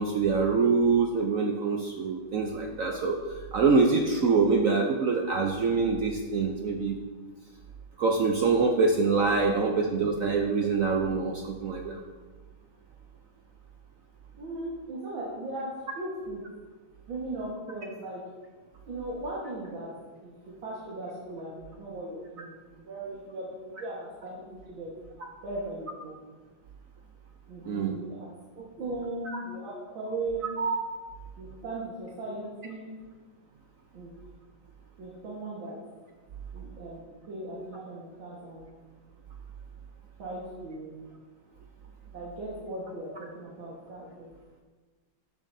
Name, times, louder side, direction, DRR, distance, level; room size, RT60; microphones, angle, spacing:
voice 1, 0.0-3.2 3.5-7.0 8.0-12.0 27.7-28.0 29.3-29.4 30.6-30.8 37.7-37.8, right 4 dB, 70° right, 2 dB, 0.8 m, -25 dB
voice 2, 14.3-16.4 17.1-18.2 18.9-19.9 20.2-24.9 25.4-26.1 27.5-28.3 28.6-30.5 31.4-33.1 33.9-34.1 35.0-35.8 36.5-38.7 40.2-40.9 42.1-44.3, right 2 dB, 85° right, -6 dB, 2.3 m, -38 dB
12.5 x 7.0 x 2.7 m, 1.4 s
omnidirectional pair, 2.1 m